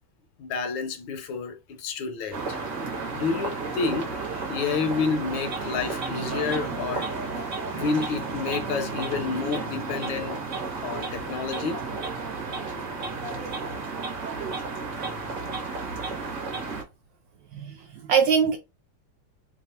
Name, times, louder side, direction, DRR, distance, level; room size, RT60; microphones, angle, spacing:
voice 1, 0.4-2.6 3.1-4.1 4.5-7.1 7.4-10.4 10.8-11.8, left 5 dB, 75° left, 1.3 m, -29 dB
sound 1, 2.3-16.8, right 4 dB, 50° right, 1.1 m, -32 dB
voice 2, 17.5-18.6, right 6 dB, 75° right, 1.0 m, -23 dB
3.4 x 2.3 x 4.1 m
omnidirectional pair, 2.4 m